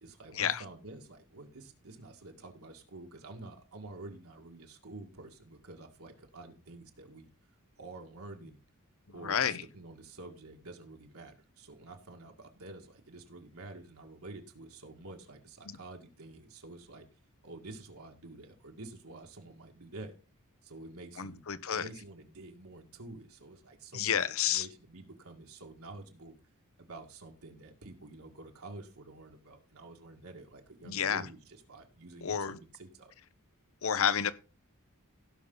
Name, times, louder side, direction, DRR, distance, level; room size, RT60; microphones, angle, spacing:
voice 1, 0.0-7.3 7.8-8.6 9.1-17.0 17.4-20.2 20.6-21.4 21.7-26.3 26.8-33.1, right 2 dB, 75° right, 1.9 m, -49 dB
voice 2, 9.2-9.6 21.2-21.8 23.9-24.7 30.8-31.3 32.2-32.6 33.8-34.3, left 8 dB, 65° left, 0.7 m, -30 dB
17.0 x 5.8 x 3.9 m
head